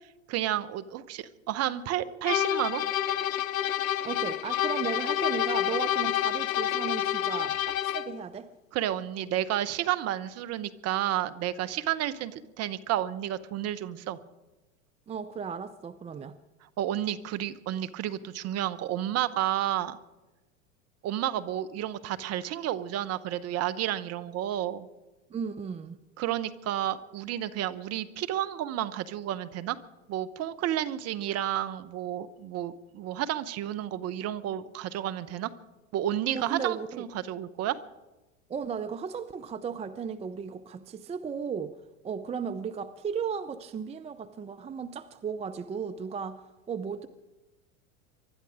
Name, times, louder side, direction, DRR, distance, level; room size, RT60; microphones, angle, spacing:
voice 1, 0.3-2.8 8.7-14.2 16.8-20.0 21.0-24.9 26.2-29.8 30.1-35.5 35.9-37.8, right 12 dB, 40° right, 13 dB, 1.0 m, -31 dB
sound 1, 2.3-8.2, left 11 dB, 85° left, 0.6 m, -28 dB
voice 2, 4.0-8.5 15.1-16.4 25.3-26.0 36.3-37.1 38.5-41.8 42.0-46.4 46.7-47.1, right 6 dB, 15° right, 12 dB, 0.6 m, -35 dB
24.0 x 12.0 x 5.0 m, 1.1 s
hypercardioid pair, 95°, 40 cm